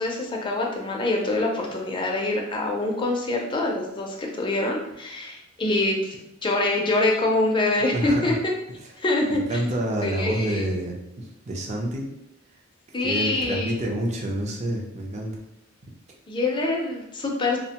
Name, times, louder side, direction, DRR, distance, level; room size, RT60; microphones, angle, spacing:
voice 1, 0.0-8.4 9.0-9.6 10.0-10.6 12.9-13.7 16.3-17.6, left 2 dB, 25° left, 0 dB, 0.4 m, -25 dB
voice 2, 7.9-8.3 9.3-11.0 11.5-12.1 13.0-15.4, right 1 dB, 35° right, 0 dB, 0.4 m, -28 dB
2.7 x 2.1 x 2.8 m, 0.83 s
head